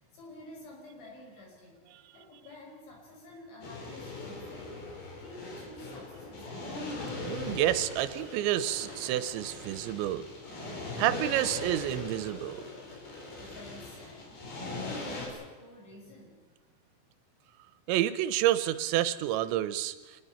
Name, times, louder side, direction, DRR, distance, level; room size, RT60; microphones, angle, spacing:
voice 1, 0.0-1.8 2.1-7.1 13.4-16.4, left 1 dB, 80° left, 0 dB, 7.9 m, -50 dB
sound 1, 3.6-15.3, left 2 dB, 55° left, 6.0 m, -40 dB
voice 2, 7.2-10.3 11.0-12.7 17.9-20.2, right 13 dB, 85° right, 14 dB, 3.1 m, -29 dB
25.0 x 20.5 x 5.7 m, 1.4 s
omnidirectional pair, 5.2 m